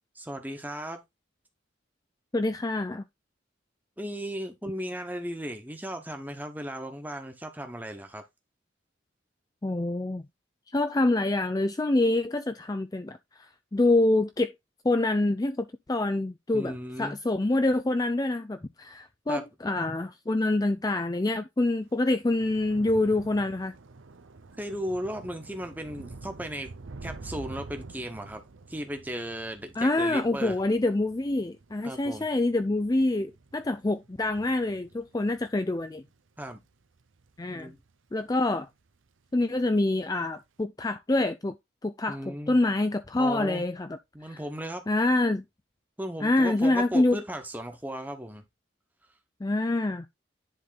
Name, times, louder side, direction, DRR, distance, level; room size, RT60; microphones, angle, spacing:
voice 1, 0.1-1.0 4.0-8.2 16.5-17.2 19.3-19.4 24.6-26.7 27.0-28.4 28.7-30.6 31.8-32.3 36.4-36.6 37.5-37.8 42.1-42.6 43.2-43.6 44.1-44.8 46.0-48.4, equal, 10° right, 1.2 m, -36 dB
voice 2, 2.3-3.0 9.6-10.2 10.7-14.5 14.8-16.7 17.0-23.7 29.8-36.0 37.4-37.7 38.1-38.7 39.3-41.6 41.8-43.9 44.3-44.4 44.9-45.4 46.2-47.2 49.4-50.1, left 2 dB, 20° left, 0.4 m, -26 dB
Thunder / Rain, 21.8-38.3 38.7-39.1 39.4-39.6, right 3 dB, 90° right, 0.8 m, -48 dB
10.5 x 3.7 x 4.0 m
head